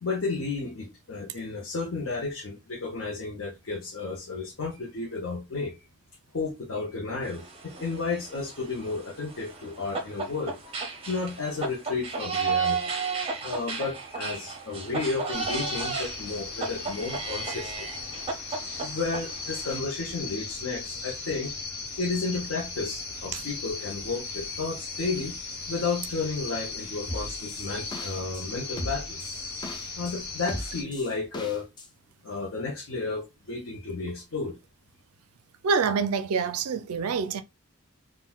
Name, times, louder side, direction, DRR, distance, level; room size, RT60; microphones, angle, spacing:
voice 1, 0.0-5.8 6.3-10.6 11.1-12.8 13.4-17.9 18.8-21.5 22.0-25.4 25.7-29.2 30.0-31.7 32.2-34.6, left 4 dB, 65° left, 0.6 m, -32 dB
sound 1, 7.2-19.8, right 5 dB, 25° right, 0.6 m, -34 dB
sound 2, 15.3-30.8, left 3 dB, 85° left, 1.0 m, -37 dB
sound 3, 27.1-28.4 28.8-30.1 30.5-31.9, left 1 dB, 20° left, 0.4 m, -37 dB
voice 2, 35.6-37.4, right 5 dB, 85° right, 0.4 m, -26 dB
3.8 x 2.1 x 2.2 m
head